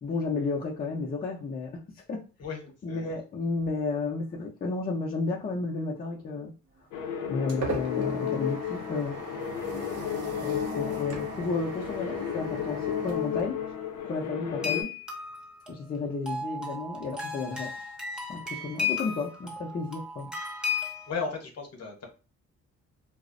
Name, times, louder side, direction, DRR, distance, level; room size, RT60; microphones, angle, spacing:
voice 1, 0.0-2.2 2.8-6.5 7.3-9.2 10.4-13.6 14.0-14.9 15.7-17.7 18.3-20.3, left 3 dB, 30° left, -2 dB, 0.5 m, -32 dB
voice 2, 2.4-3.2 21.1-22.1, left 5 dB, 55° left, 2 dB, 0.9 m, -36 dB
sound 1, 6.8-14.2, right 5 dB, 55° right, 0.7 m, -40 dB
sound 2, 6.9-14.8, left 8 dB, 80° left, 0.5 m, -33 dB
sound 3, 14.6-21.1, left 5 dB, 5° right, 0.7 m, -34 dB
2.4 x 2.0 x 2.5 m, 0.33 s
cardioid pair, 90°, 30 cm